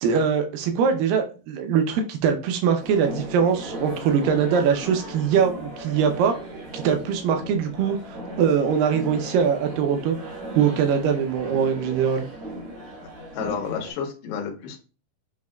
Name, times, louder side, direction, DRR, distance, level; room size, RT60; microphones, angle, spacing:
voice 1, 0.0-6.3 6.7-10.2 10.6-12.3, right 7 dB, 80° right, 6 dB, 2.2 m, -22 dB
sound 1, 2.8-13.9, right 1 dB, 60° right, 1.5 m, -37 dB
voice 2, 13.3-14.8, left 6 dB, 75° left, 2 dB, 2.4 m, -30 dB
7.1 x 2.8 x 2.2 m, 0.35 s
omnidirectional pair, 4.2 m